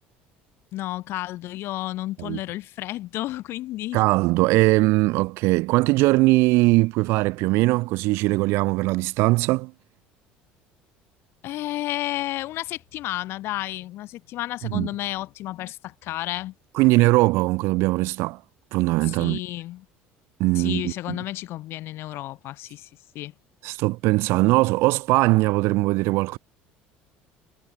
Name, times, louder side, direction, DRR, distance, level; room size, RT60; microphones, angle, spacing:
voice 1, 0.7-4.0 11.4-16.5 19.1-19.8 20.5-22.9 23.1-23.3, left 16 dB, 65° left, 4.8 m, -32 dB
voice 2, 3.9-9.7 14.6-14.9 16.7-18.4 18.7-19.4 20.4-21.2 23.6-26.4, right 22 dB, 70° right, 0.7 m, -20 dB
supercardioid pair, 110°, 4 cm